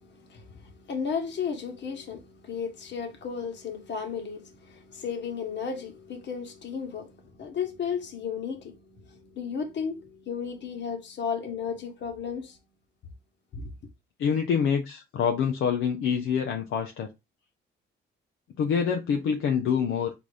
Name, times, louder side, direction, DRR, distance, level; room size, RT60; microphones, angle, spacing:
voice 1, 0.0-12.6 13.5-13.7, left 6 dB, 60° left, 1.3 m, -34 dB
voice 2, 14.2-17.1 18.6-20.1, left 7 dB, 75° left, 0.7 m, -26 dB
4.0 x 2.6 x 4.8 m
cardioid pair, 70°, 21 cm